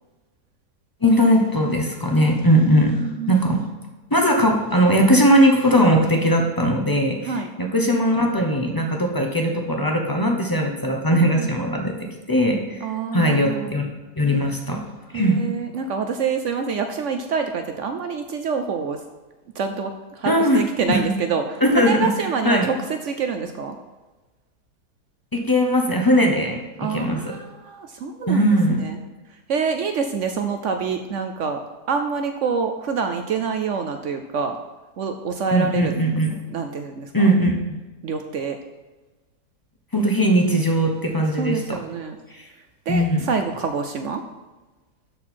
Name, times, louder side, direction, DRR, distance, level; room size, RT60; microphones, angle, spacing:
voice 1, 1.0-3.0 3.3-3.6 4.1-7.3 7.6-13.9 14.2-14.8 15.1-15.4 20.2-20.6 20.9-21.1 21.6-21.9 22.4-22.7 25.3-27.3 28.3-28.8 35.5-36.3 37.1-37.8 39.9-41.8 42.3-42.4 42.9-43.3, equal, 25° left, 1 dB, 0.5 m, -19 dB
voice 2, 2.7-3.4 7.3-7.5 11.1-11.5 12.8-13.8 15.1-19.0 19.5-23.8 26.8-28.5 28.8-29.0 29.5-31.6 31.9-34.6 35.0-35.9 36.5-37.3 38.0-38.6 41.3-42.2 42.9-44.2, right 5 dB, 65° right, 6 dB, 0.7 m, -26 dB
12.0 x 4.3 x 4.4 m, 1.2 s
omnidirectional pair, 1.7 m